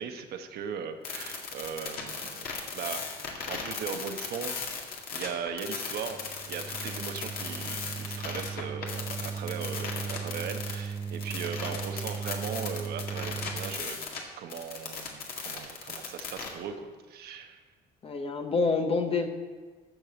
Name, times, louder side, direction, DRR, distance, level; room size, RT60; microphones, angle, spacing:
voice 1, 0.0-3.0 3.5-4.5 5.1-14.0 14.4-17.6, right 7 dB, 70° right, 7 dB, 1.1 m, -38 dB
sound 1, 1.0-14.2 14.5-16.5, left 5 dB, 60° left, 2.0 m, -37 dB
sound 2, 6.1-13.8, right 6 dB, 20° right, 0.5 m, -37 dB
voice 2, 18.0-19.3, left 4 dB, 35° left, 5 dB, 0.9 m, -27 dB
14.0 x 4.8 x 6.9 m, 1.4 s
cardioid pair, 110°, 17 cm